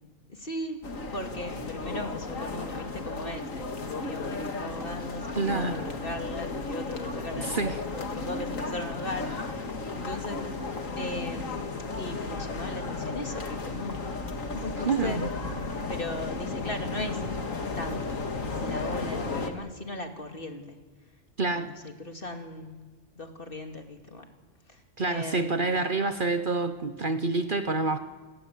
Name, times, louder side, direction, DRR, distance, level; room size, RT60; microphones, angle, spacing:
voice 1, 0.3-0.8 1.1-10.6 11.0-15.3 15.9-17.2 17.8-18.3 18.6-20.8 21.5-22.8 23.1-24.3 24.7-25.8, left 1 dB, 45° left, 4 dB, 2.8 m, -38 dB
sound 1, 0.8-19.5, left 3 dB, 85° left, 2.4 m, -34 dB
voice 2, 5.4-5.8 7.4-7.8 14.8-15.3 21.4-21.7 25.0-28.0, right 3 dB, 45° right, 10 dB, 1.1 m, -27 dB
28.5 x 20.0 x 8.5 m, 1.3 s
omnidirectional pair, 1.3 m